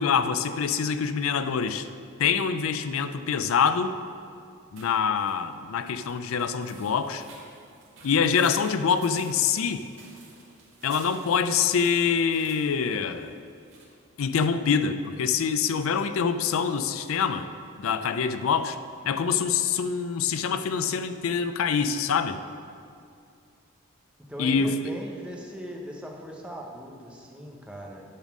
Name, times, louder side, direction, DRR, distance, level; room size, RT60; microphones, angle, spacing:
voice 1, 0.0-1.9 2.2-4.0 4.7-7.2 8.0-9.8 10.8-13.3 14.2-17.5 17.8-18.8 19.1-22.4 24.4-24.7, left 6 dB, 80° left, 11 dB, 0.4 m, -25 dB
sound 1, 4.8-13.8, right 3 dB, 65° right, 2.2 m, -52 dB
voice 2, 24.3-28.0, equal, 5° right, -1 dB, 0.8 m, -39 dB
10.5 x 4.1 x 6.0 m, 2.4 s
head